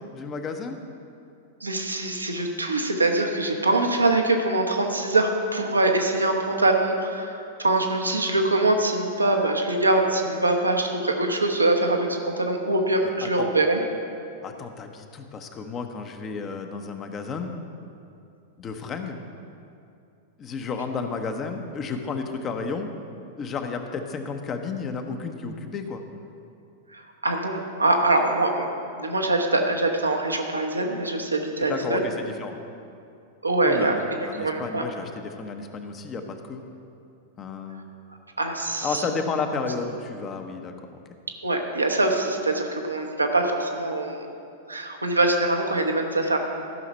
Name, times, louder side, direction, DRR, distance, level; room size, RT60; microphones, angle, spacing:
voice 1, 0.1-0.8 13.2-13.6 14.4-17.5 18.6-19.2 20.4-22.9 23.4-26.0 31.7-32.6 33.7-36.6 37.4-37.8 38.8-41.0, left 4 dB, 30° left, 6 dB, 0.9 m, -32 dB
voice 2, 1.6-13.8 26.9-28.7 29.0-32.0 33.4-33.9 34.4-34.8 38.4-39.0 41.4-44.3 44.7-46.4, right 2 dB, 85° right, 3 dB, 1.1 m, -23 dB
14.0 x 5.8 x 5.5 m, 2.5 s
figure-of-eight pair, 95°, 0 cm